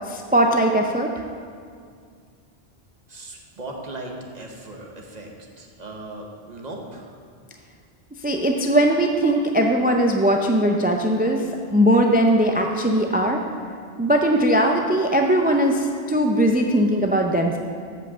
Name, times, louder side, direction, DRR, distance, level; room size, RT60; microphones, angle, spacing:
voice 1, 0.1-1.1 8.2-11.5 11.7-13.4 14.0-17.6, right 1 dB, 15° right, 2 dB, 0.3 m, -19 dB
voice 2, 3.1-5.3 5.6-7.1, right 2 dB, 45° right, 0 dB, 1.2 m, -37 dB
7.5 x 5.6 x 7.2 m, 2.2 s
omnidirectional pair, 1.0 m